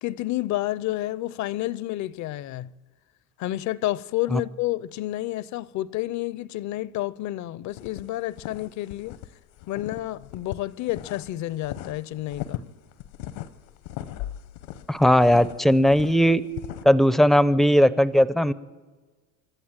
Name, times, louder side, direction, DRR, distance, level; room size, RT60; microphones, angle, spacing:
voice 1, 0.0-2.7 3.4-9.2 9.7-12.6, left 16 dB, 50° left, 0.6 m, -30 dB
sound 1, 7.7-9.3 9.6-11.3 11.6-16.8, left 13 dB, 75° left, 1.1 m, -38 dB
voice 2, 14.9-16.4 16.8-18.5, equal, ahead, 0.5 m, -18 dB
26.0 x 12.0 x 9.0 m
supercardioid pair, 115°, 38 cm